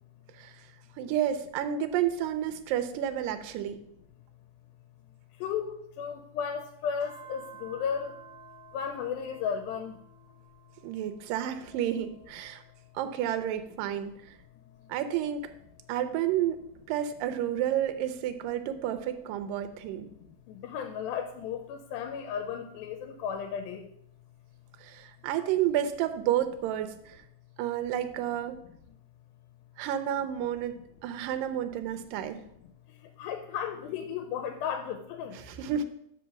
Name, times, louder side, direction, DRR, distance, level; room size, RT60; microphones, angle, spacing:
voice 1, 1.0-3.8 10.8-12.6 13.0-14.1 14.9-15.4 15.9-16.6 16.9-20.1 24.8-27.2 27.6-28.6 29.8-32.4 35.3-35.9, right 10 dB, 80° right, 8 dB, 2.2 m, -30 dB
voice 2, 5.4-8.1 8.7-10.0 20.5-23.9 33.2-35.4, left 7 dB, 90° left, 7 dB, 2.4 m, -34 dB
sound 1, 7.0-13.7 14.2-17.1 17.7-20.4 21.2-23.6 25.0-26.1, right 3 dB, 50° left, 1.2 m, -56 dB
6.4 x 5.4 x 5.8 m, 0.73 s
omnidirectional pair, 4.1 m